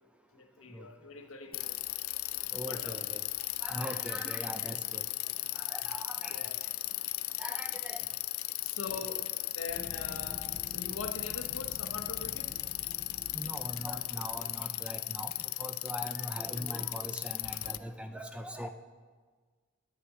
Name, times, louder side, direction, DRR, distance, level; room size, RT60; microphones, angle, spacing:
voice 1, 0.3-1.8 2.7-3.0 4.4-4.5 6.3-6.6 8.6-12.5, left 4 dB, 75° left, 5 dB, 0.9 m, -43 dB
Bicycle, 1.5-17.8, left 18 dB, 90° left, 0.4 m, -36 dB
voice 2, 2.5-3.2 3.6-5.0 5.5-6.4 7.4-8.1 13.3-15.3 15.6-18.7, equal, 5° right, 7 dB, 0.4 m, -41 dB
sound 1, 9.7-14.9, left 1 dB, 15° left, 2.2 m, -49 dB
9.6 x 5.8 x 7.4 m, 1.5 s
head